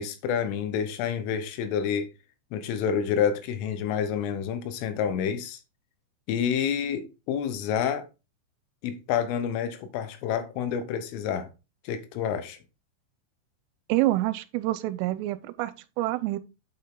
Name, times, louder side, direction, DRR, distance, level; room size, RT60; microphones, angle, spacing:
voice 1, 0.0-2.1 2.5-5.6 6.3-8.1 8.8-11.5 11.9-12.6, left 8 dB, 85° left, 3.6 m, -28 dB
voice 2, 13.9-16.4, right 17 dB, 90° right, 3.2 m, -27 dB
8.8 x 5.6 x 3.8 m
omnidirectional pair, 5.7 m